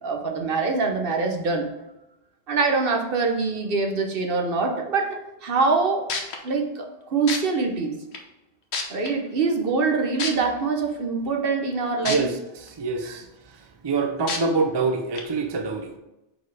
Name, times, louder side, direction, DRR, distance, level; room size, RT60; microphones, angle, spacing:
voice 1, 0.0-1.7 2.5-6.0 6.4-8.0 8.9-12.3 13.0-13.2, right 4 dB, 60° right, 3 dB, 1.0 m, -24 dB
sound 1, 5.7-5.8 6.1-6.4 7.3-7.4 8.1-8.2 8.7-9.1 10.2-10.3 12.1-12.2 12.7-12.8 14.3-14.4 15.2-15.3, left 5 dB, 85° left, 1.1 m, -27 dB
voice 2, 12.6-13.2 13.8-16.0, right 4 dB, 30° right, 5 dB, 0.5 m, -25 dB
5.1 x 4.1 x 4.7 m, 0.92 s
omnidirectional pair, 1.1 m